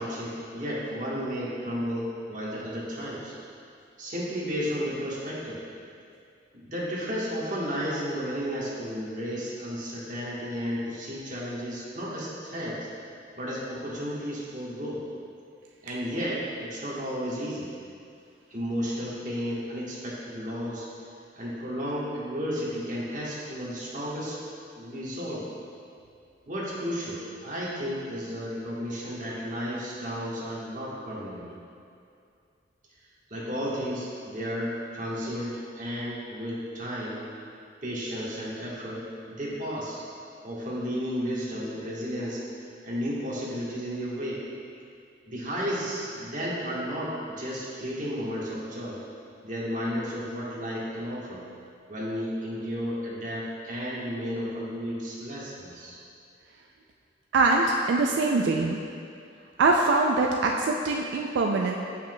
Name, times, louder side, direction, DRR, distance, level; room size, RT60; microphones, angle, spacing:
voice 1, 0.0-3.3 4.0-5.6 6.5-12.9 13.3-15.0 15.8-17.7 18.5-20.9 21.3-24.4 24.7-25.4 26.5-31.5 33.3-37.2 37.8-40.0 40.4-42.4 42.8-44.4 45.3-49.0 49.4-51.5 51.9-56.0, equal, 45° right, -7 dB, 1.3 m, -33 dB
voice 2, 57.3-58.8 59.6-61.7, right 3 dB, 90° right, 1 dB, 0.3 m, -23 dB
7.6 x 5.6 x 2.2 m, 2.5 s
head